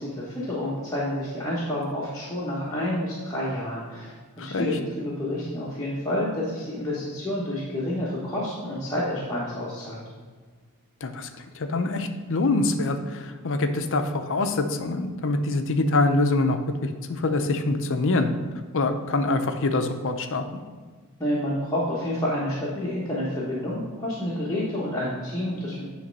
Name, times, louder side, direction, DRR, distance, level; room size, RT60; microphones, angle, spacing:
voice 1, 0.0-10.0 21.2-25.8, left 1 dB, 15° left, -7 dB, 1.3 m, -29 dB
voice 2, 11.5-18.3 18.7-20.6, left 2 dB, 60° left, 7 dB, 0.6 m, -25 dB
9.5 x 3.3 x 5.4 m, 1.5 s
head